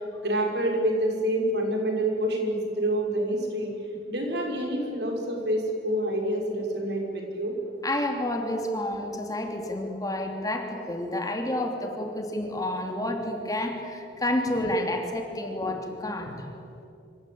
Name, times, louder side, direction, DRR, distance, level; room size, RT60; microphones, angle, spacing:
voice 1, 0.2-3.7 4.1-7.5, right 1 dB, 65° right, 1 dB, 6.0 m, -27 dB
voice 2, 7.8-16.5, left 1 dB, 20° left, 3 dB, 3.0 m, -30 dB
26.0 x 26.0 x 8.8 m, 2.6 s
head